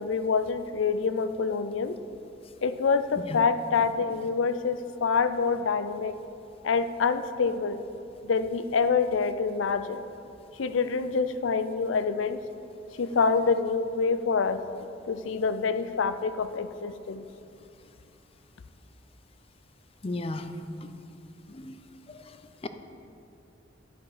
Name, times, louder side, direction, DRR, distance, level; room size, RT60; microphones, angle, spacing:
voice 1, 0.0-2.0 2.6-6.1 6.6-7.8 8.2-10.0 10.6-12.4 13.0-14.6 15.1-17.2, left 5 dB, 90° left, 11 dB, 0.5 m, -26 dB
voice 2, 20.0-20.5 21.5-21.8 22.6-22.7, left 2 dB, 30° left, 9 dB, 0.5 m, -33 dB
10.5 x 6.4 x 5.0 m, 2.7 s
head